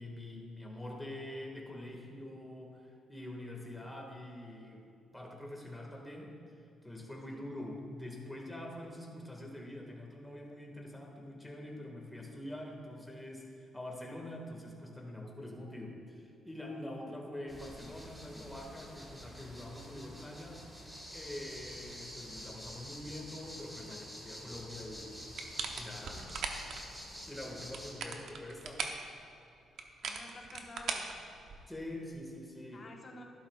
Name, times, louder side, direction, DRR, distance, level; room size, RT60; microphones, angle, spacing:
voice 1, 0.0-4.9 5.1-6.3 6.8-20.6 21.1-25.1 25.7-26.2 27.3-28.8 31.7-32.9, left 1 dB, 5° left, -1 dB, 1.9 m, -45 dB
sound 1, 17.5-27.9, equal, 10° right, 2.3 m, -48 dB
voice 2, 23.8-24.1 26.0-26.3 30.0-31.1 32.7-33.2, left 2 dB, 40° left, 0 dB, 1.3 m, -51 dB
sound 2, 25.4-26.8 27.6-29.1 29.8-31.8, right 5 dB, 70° right, 0.9 m, -39 dB
12.0 x 11.5 x 2.5 m, 2.7 s
cardioid pair, 90°, 0 cm